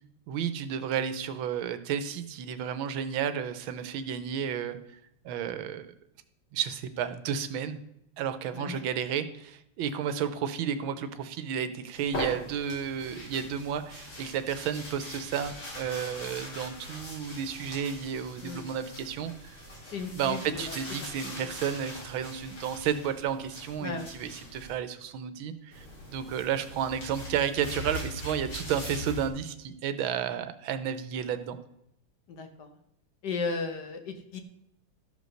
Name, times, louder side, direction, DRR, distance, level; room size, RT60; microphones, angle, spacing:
voice 1, 0.3-5.0 5.2-5.9 6.5-7.8 8.2-19.6 20.2-31.6, right 8 dB, 85° right, 11 dB, 1.6 m, -32 dB
sound 1, 11.9-24.7 25.7-29.3, left 1 dB, 85° left, 4.3 m, -41 dB
voice 2, 19.9-20.8 21.3-21.5 23.8-24.1 32.3-32.7 33.2-34.4, left 4 dB, 60° left, 6 dB, 1.5 m, -35 dB
13.0 x 5.2 x 6.3 m, 0.78 s
omnidirectional pair, 2.2 m